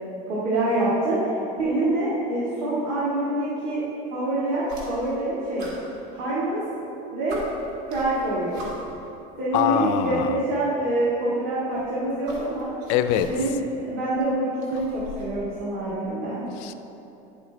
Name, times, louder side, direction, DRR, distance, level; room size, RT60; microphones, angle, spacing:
voice 1, 0.3-3.8 4.1-5.7 6.1-6.6 7.1-7.4 7.9-8.6 9.4-12.7 13.2-16.4, right 1 dB, 50° right, -8 dB, 1.8 m, -26 dB
sound 1, 4.6-5.2 5.6-6.6 7.0-7.1 7.3-9.1 10.1-10.2 11.6-13.6 14.0-15.4, equal, 75° right, 2.0 m, -41 dB
voice 2, 9.5-10.4 12.9-13.3 16.6-16.7, left 10 dB, 55° left, 10 dB, 0.4 m, -23 dB
9.7 x 7.5 x 3.3 m, 2.9 s
cardioid pair, 170°, 20 cm